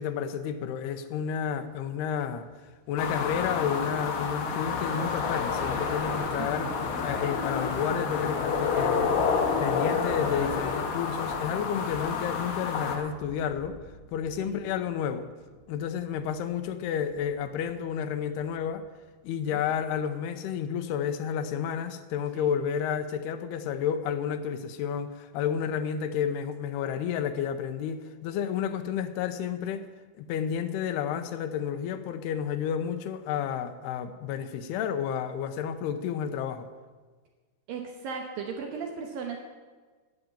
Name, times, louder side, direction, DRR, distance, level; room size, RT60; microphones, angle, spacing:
voice 1, 0.0-2.5 2.9-6.7 7.0-9.2 9.6-13.8 14.1-15.3 15.7-18.9 19.2-29.9 30.2-36.7, left 8 dB, 85° left, 9 dB, 2.8 m, -31 dB
sound 1, 1.5-4.1 4.4-4.6 5.1-19.9, equal, 15° left, 4.5 m, -47 dB
sound 2, 3.0-13.0, left 5 dB, 65° left, 2.8 m, -29 dB
sound 3, 5.4-8.2 9.1-10.8, right 1 dB, 40° right, 4.8 m, -46 dB
voice 2, 6.4-6.8 14.4-14.6 19.5-19.9 22.3-22.5 37.7-39.4, right 6 dB, 70° right, 3 dB, 2.6 m, -37 dB
12.0 x 8.9 x 8.6 m, 1.4 s
omnidirectional pair, 4.6 m